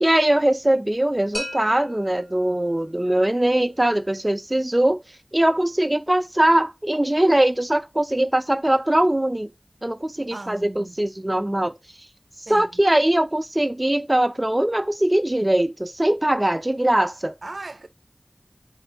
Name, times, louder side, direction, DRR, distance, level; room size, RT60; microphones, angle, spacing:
voice 1, 0.0-5.0 5.3-9.5 9.8-11.7 12.5-17.3, right 1 dB, 25° right, 0.4 m, -21 dB
sound 1, 1.3-3.2, left 1 dB, 80° left, 1.3 m, -37 dB
voice 2, 10.3-11.0 12.5-12.7 17.4-17.9, right 2 dB, 80° right, 0.7 m, -37 dB
4.3 x 2.5 x 3.9 m
wide cardioid pair, 55°, 0 cm